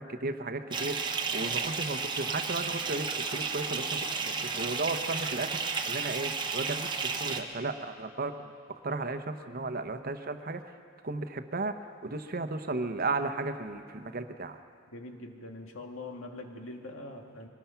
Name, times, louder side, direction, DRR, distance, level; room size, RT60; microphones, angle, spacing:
voice 1, 0.0-8.4 8.7-10.7 11.0-14.6, right 3 dB, 45° right, 8 dB, 1.0 m, -35 dB
Bathtub (filling or washing) / Fill (with liquid), 0.7-7.4, right 5 dB, 25° right, 1.1 m, -33 dB
voice 2, 14.9-17.5, left 2 dB, 80° left, 2 dB, 2.1 m, -43 dB
23.5 x 19.5 x 5.9 m, 2.2 s
head